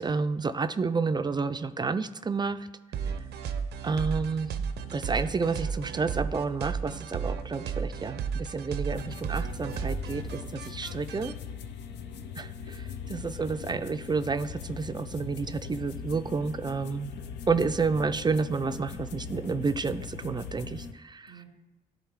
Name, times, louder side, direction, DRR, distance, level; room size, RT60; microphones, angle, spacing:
voice 1, 0.0-2.7 3.8-4.5 4.9-11.4 12.4-17.1 17.5-21.4, right 4 dB, 25° right, 11 dB, 0.4 m, -30 dB
sound 1, 2.9-11.3, right 6 dB, 75° right, 0.5 m, -34 dB
sound 2, 8.9-20.9, left 6 dB, 80° left, 0.5 m, -40 dB
voice 2, 11.8-12.6 21.3-21.4, right 1 dB, 65° left, -3 dB, 2.3 m, -55 dB
10.5 x 3.9 x 3.6 m, 1.1 s
supercardioid pair, 55°, 18 cm